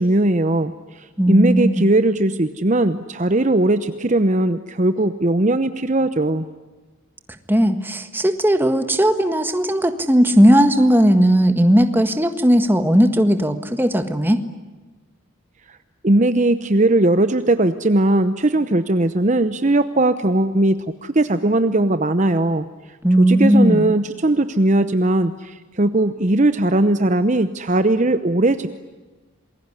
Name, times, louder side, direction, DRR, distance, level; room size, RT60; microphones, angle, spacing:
voice 1, 0.0-6.4 15.7-15.8 16.0-22.7 23.2-28.7, right 2 dB, 35° right, 11 dB, 0.8 m, -19 dB
voice 2, 1.2-1.9 7.5-14.4 23.0-23.9, equal, 10° right, 8 dB, 1.6 m, -16 dB
28.0 x 21.5 x 9.8 m, 1.3 s
head